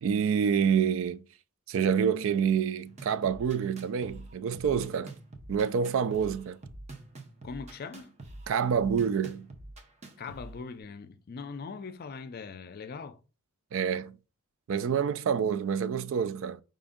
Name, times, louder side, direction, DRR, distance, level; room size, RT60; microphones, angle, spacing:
voice 1, 0.0-1.2 1.7-5.1 5.5-6.6 8.5-9.5 13.7-14.1 14.7-16.6, right 7 dB, 65° right, 0.3 m, -27 dB
sound 1, 2.8-10.8, right 2 dB, 30° right, 0.7 m, -46 dB
voice 2, 7.4-8.1 10.2-13.2, left 5 dB, 45° left, 0.4 m, -41 dB
5.0 x 2.6 x 3.6 m
head